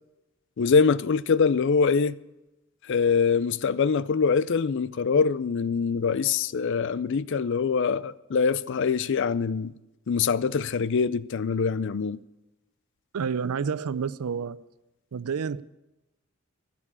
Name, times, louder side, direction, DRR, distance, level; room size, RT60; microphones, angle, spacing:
voice 1, 0.6-2.2 2.9-9.7 10.1-12.2, left 5 dB, 55° left, 0.4 m, -24 dB
voice 2, 13.1-14.6 15.1-15.6, right 6 dB, 85° right, 0.5 m, -29 dB
15.0 x 6.9 x 8.5 m
head